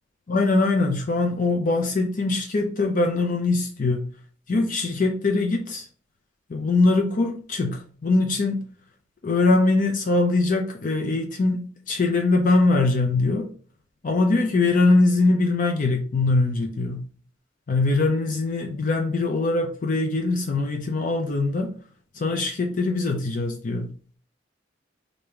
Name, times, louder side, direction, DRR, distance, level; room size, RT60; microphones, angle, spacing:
voice 1, 0.3-4.1 4.5-5.9 6.5-8.6 9.2-13.5 14.0-17.1 17.7-21.8 22.1-23.9, left 3 dB, 45° left, 0.5 m, -22 dB
3.3 x 2.6 x 4.3 m
head